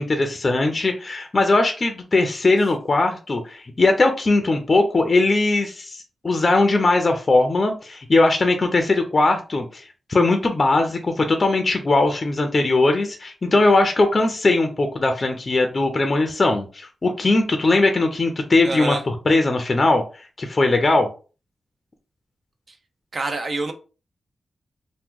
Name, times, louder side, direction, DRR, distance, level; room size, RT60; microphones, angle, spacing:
voice 1, 0.0-21.1, left 2 dB, 35° left, 5 dB, 0.5 m, -20 dB
voice 2, 18.6-19.0 23.1-23.7, right 2 dB, 45° right, 6 dB, 0.5 m, -26 dB
2.9 x 2.1 x 3.5 m, 0.35 s
wide cardioid pair, 110°, 0 cm